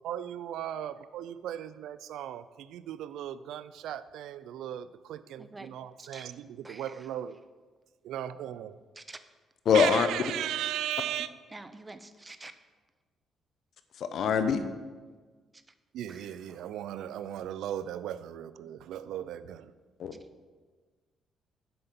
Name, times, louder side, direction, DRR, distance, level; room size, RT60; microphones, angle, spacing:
voice 1, 0.0-7.4 8.0-8.8 9.7-11.3 15.9-19.7, right 11 dB, 85° right, 0.3 m, -37 dB
voice 2, 5.4-5.7 6.0-6.3 6.6-6.9 9.0-9.2 11.5-12.5 16.1-16.7, right 2 dB, 20° right, 0.6 m, -47 dB
voice 3, 9.7-10.1 14.0-14.6 20.0-20.1, left 6 dB, 65° left, 0.7 m, -23 dB
7.7 x 5.2 x 5.9 m
cardioid pair, 90°, 0 cm